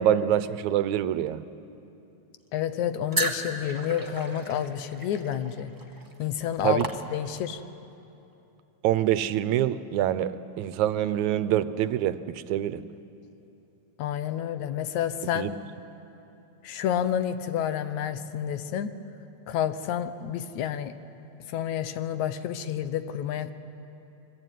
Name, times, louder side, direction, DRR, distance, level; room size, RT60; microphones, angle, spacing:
voice 1, 0.0-1.4 6.6-6.9 8.8-12.8 15.4-15.5, right 11 dB, 80° right, 13 dB, 2.1 m, -25 dB
voice 2, 2.5-5.7 6.2-7.6 14.0-15.5 16.6-18.9 19.5-20.9 21.5-23.5, left 10 dB, 80° left, 11 dB, 2.3 m, -29 dB
sound 1, 3.1-7.6, right 2 dB, 15° right, 0.7 m, -34 dB
25.5 x 23.0 x 9.2 m, 3.0 s
omnidirectional pair, 3.3 m